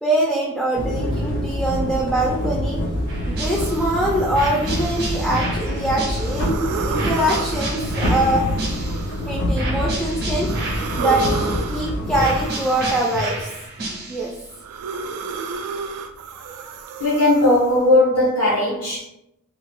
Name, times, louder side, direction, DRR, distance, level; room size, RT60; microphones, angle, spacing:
voice 1, 0.0-2.8 3.3-8.4 9.3-10.5 11.0-11.3 11.7-13.5 14.1-14.3, right 1 dB, ahead, -3 dB, 0.3 m, -23 dB
sound 1, 0.7-12.4, equal, 50° left, 0.6 m, -26 dB
sound 2, 3.1-3.9 4.3-6.6 6.9-9.2 9.5-11.8 12.2-14.4, right 2 dB, 45° right, 0.6 m, -31 dB
sound 3, 3.4-5.7 6.1-9.8 10.4-13.6 14.0-17.9, right 4 dB, 85° right, 0.3 m, -32 dB
voice 2, 17.0-19.1, left 2 dB, 90° left, -6 dB, 0.9 m, -17 dB
3.0 x 2.1 x 2.9 m, 0.80 s
head